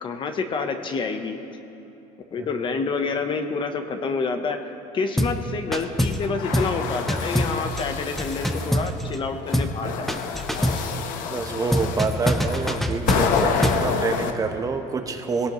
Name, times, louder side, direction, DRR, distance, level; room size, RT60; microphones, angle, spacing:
voice 1, 0.0-1.4 2.3-4.6 4.9-10.2 10.6-11.0, left 4 dB, 35° left, 7 dB, 0.9 m, -28 dB
sound 1, 5.2-5.4 5.7-6.3 6.5-6.8 7.1-9.2 9.5-9.8 10.1-10.9 11.7-13.9, equal, ahead, 0.6 m, -24 dB
sound 2, 6.2-8.8 9.5-14.3, left 6 dB, 70° left, 1.0 m, -28 dB
voice 2, 11.3-15.5, right 4 dB, 25° right, 5 dB, 1.0 m, -27 dB
19.0 x 17.5 x 3.1 m, 2.9 s
cardioid pair, 130°, 14 cm